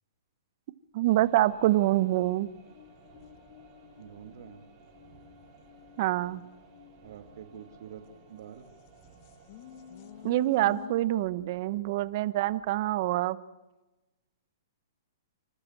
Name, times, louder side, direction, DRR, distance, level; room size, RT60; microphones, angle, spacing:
voice 1, 0.9-2.5 6.0-6.4 10.2-13.4, right 15 dB, 45° right, 16 dB, 0.9 m, -26 dB
sound 1, 1.1-12.9, right 4 dB, 30° right, 6.6 m, -58 dB
sound 2, 2.6-8.4 9.0-10.9, left 9 dB, 40° left, 1.1 m, -50 dB
voice 2, 4.0-4.6 7.0-8.7, right 9 dB, 60° right, 8 dB, 2.4 m, -47 dB
29.0 x 12.5 x 7.4 m, 1.1 s
hypercardioid pair, 150°, 2 cm